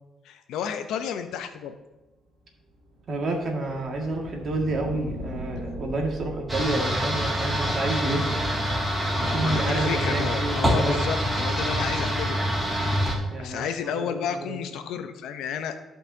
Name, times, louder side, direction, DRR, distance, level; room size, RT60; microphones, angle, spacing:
voice 1, 0.2-1.7 9.1-12.4 13.4-15.7, left 7 dB, 85° left, 8 dB, 0.7 m, -31 dB
sound 1, 2.3-9.2, right 1 dB, 70° right, 2.7 m, -41 dB
voice 2, 3.1-8.4 9.2-11.0 13.3-14.6, right 2 dB, 55° right, 1 dB, 1.9 m, -29 dB
sound 2, 6.5-13.1, equal, 15° right, 2.4 m, -26 dB
14.0 x 5.5 x 2.8 m, 1.1 s
cardioid pair, 90°, 0 cm